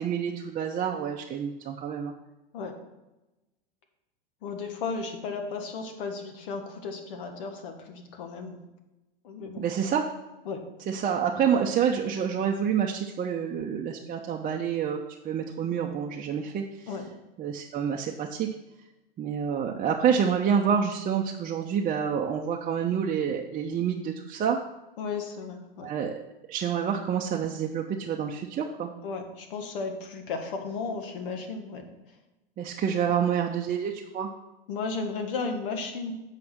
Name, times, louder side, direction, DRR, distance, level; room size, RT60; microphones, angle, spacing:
voice 1, 0.0-2.1 9.6-10.1 10.9-15.0 15.2-16.6 17.4-18.5 19.2-24.6 25.8-26.2 26.5-28.9 32.6-34.3, right 7 dB, 30° right, 0 dB, 0.7 m, -28 dB
voice 2, 4.4-8.6 9.2-9.6 10.4-10.6 16.9-17.1 25.0-25.9 29.0-31.8 34.7-36.1, left 4 dB, 65° left, 5 dB, 1.5 m, -34 dB
7.7 x 4.8 x 6.0 m, 1.0 s
hypercardioid pair, 90°, 29 cm